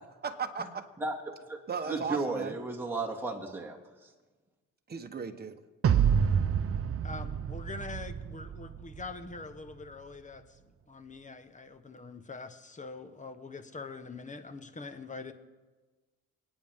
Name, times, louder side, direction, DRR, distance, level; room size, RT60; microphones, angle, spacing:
voice 1, 0.2-0.8 1.7-2.6 4.9-5.6, right 5 dB, 30° right, 6 dB, 1.3 m, -36 dB
voice 2, 1.9-3.8, right 3 dB, 5° right, -2 dB, 2.3 m, -33 dB
sound 1, 5.8-9.1, right 7 dB, 50° right, 0.8 m, -28 dB
voice 3, 7.0-15.3, left 3 dB, 25° left, 9 dB, 1.2 m, -44 dB
26.5 x 9.2 x 3.7 m, 1.3 s
cardioid pair, 90°, 30 cm